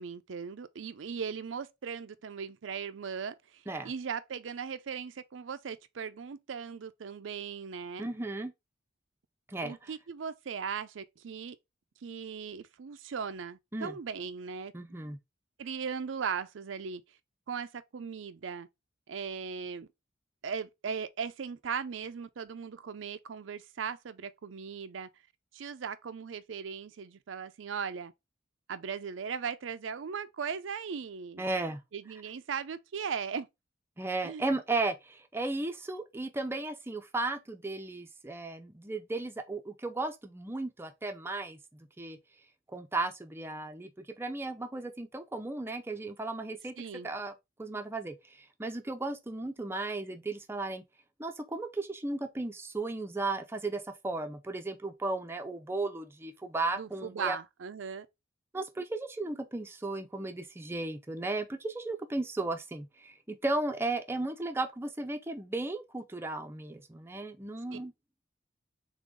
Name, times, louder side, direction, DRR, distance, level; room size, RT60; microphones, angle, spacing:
voice 1, 0.0-8.1 9.6-11.6 12.0-14.7 15.6-17.0 17.5-18.7 19.1-19.9 20.4-25.1 25.5-28.1 28.7-31.5 31.9-33.5 34.2-34.4 46.8-47.1 56.7-58.1 67.7-67.8, right 6 dB, 80° right, 0.5 m, -38 dB
voice 2, 8.0-8.5 9.5-9.9 13.7-14.0 14.7-15.2 31.4-31.8 34.0-42.2 42.7-46.7 47.0-47.3 47.6-50.8 51.2-57.4 58.5-67.9, right 2 dB, 15° right, 0.5 m, -35 dB
3.8 x 3.5 x 3.7 m
head